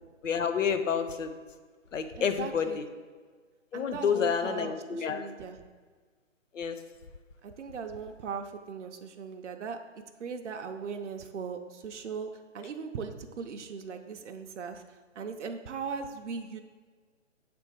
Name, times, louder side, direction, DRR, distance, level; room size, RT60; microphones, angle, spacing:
voice 1, 0.2-1.3 1.9-2.8 3.7-5.3 6.5-6.8, left 6 dB, 75° left, 8 dB, 0.7 m, -29 dB
voice 2, 2.2-2.8 3.7-5.6 7.4-9.8 10.2-16.6, right 5 dB, 65° right, 5 dB, 0.6 m, -39 dB
7.8 x 3.4 x 4.6 m, 1.5 s
hypercardioid pair, 155°, 38 cm